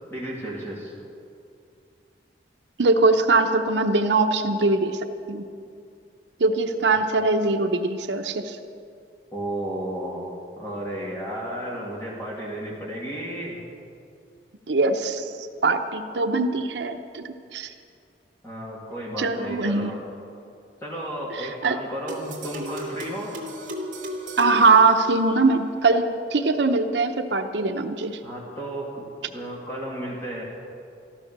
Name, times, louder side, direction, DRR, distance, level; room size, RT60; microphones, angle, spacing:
voice 1, 0.1-0.9 9.3-10.3 10.6-13.6 18.4-20.0 20.8-23.3 28.2-30.4, right 1 dB, 15° left, -5 dB, 2.2 m, -33 dB
voice 2, 2.8-5.5 6.4-8.6 14.7-15.3 15.6-17.7 19.2-19.9 21.3-21.8 24.4-28.2, right 3 dB, 80° right, 7 dB, 0.7 m, -22 dB
sound 1, 22.1-25.5, equal, 45° right, 2.1 m, -35 dB
14.0 x 13.0 x 6.6 m, 2.5 s
head